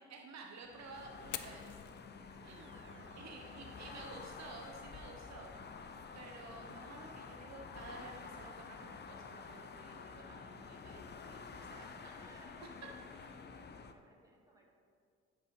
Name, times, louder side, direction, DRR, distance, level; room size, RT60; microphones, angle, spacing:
voice 1, 0.0-1.8 2.4-2.5 3.2-5.5 6.1-12.1 13.1-13.2, right 3 dB, 60° right, 1 dB, 0.9 m, -52 dB
sound 1, 0.6-13.9, left 5 dB, 35° left, 0.6 m, -50 dB
Fire, 1.2-9.2, left 13 dB, 90° left, 0.5 m, -54 dB
voice 2, 2.3-3.1 3.4-4.2 12.1-14.7, right 1 dB, 10° right, -2 dB, 1.9 m, -62 dB
sound 2, 2.5-4.8, right 7 dB, 40° right, 0.5 m, -61 dB
9.8 x 5.3 x 4.7 m, 2.3 s
cardioid pair, 90°, 30 cm